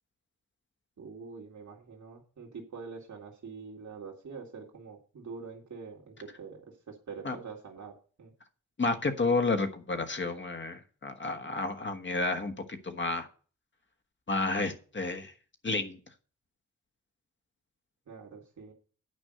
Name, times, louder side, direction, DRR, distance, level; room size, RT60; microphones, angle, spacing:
voice 1, 1.0-6.6 6.9-7.9 8.2-8.3 18.1-18.7, right 5 dB, 65° right, 1 dB, 2.2 m, -45 dB
voice 2, 8.8-13.3 14.3-15.3 15.6-16.0, left 3 dB, 35° left, 7 dB, 1.4 m, -31 dB
9.8 x 5.3 x 7.6 m, 0.39 s
wide cardioid pair, 145°, 31 cm